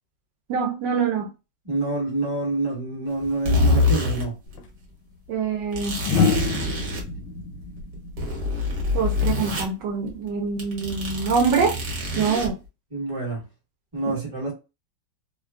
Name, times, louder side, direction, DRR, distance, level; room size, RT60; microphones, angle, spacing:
voice 1, 0.5-1.3 5.3-6.0 8.9-11.8 12.1-12.6, right 5 dB, 75° right, 1.2 m, -24 dB
voice 2, 1.6-4.4 12.9-13.4 13.9-14.5, right 2 dB, 15° right, 0.8 m, -27 dB
sound 1, 3.2-4.3 4.5-4.6 5.7-7.0 7.6-9.7 10.1-10.3 10.6-12.5, left 3 dB, 50° right, 1.2 m, -25 dB
sound 2, 4.5-4.6 6.0-9.1 10.6-10.9, left 4 dB, 80° left, 1.3 m, -26 dB
3.1 x 2.2 x 2.3 m
omnidirectional pair, 2.0 m